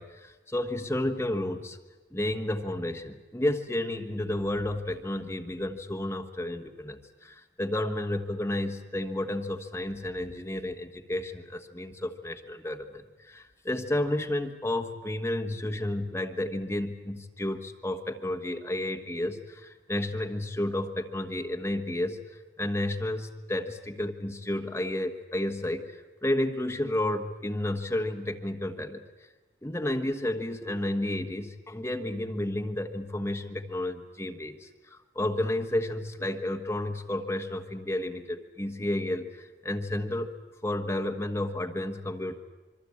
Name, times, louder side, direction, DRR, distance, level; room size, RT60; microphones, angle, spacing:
voice 1, 0.0-1.8 2.1-29.0 29.6-40.3 40.6-42.4, left 1 dB, 15° left, 4 dB, 1.3 m, -31 dB
26.0 x 23.5 x 8.5 m, 1.2 s
head